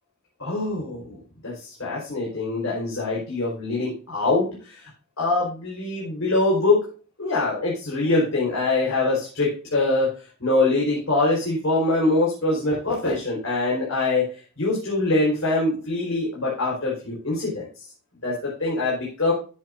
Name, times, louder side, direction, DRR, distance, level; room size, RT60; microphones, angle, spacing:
voice 1, 0.4-1.2 1.4-4.9 5.2-6.9 7.2-17.9 18.2-19.3, left 2 dB, 70° left, -5 dB, 4.4 m, -24 dB
14.5 x 7.6 x 2.7 m, 0.38 s
head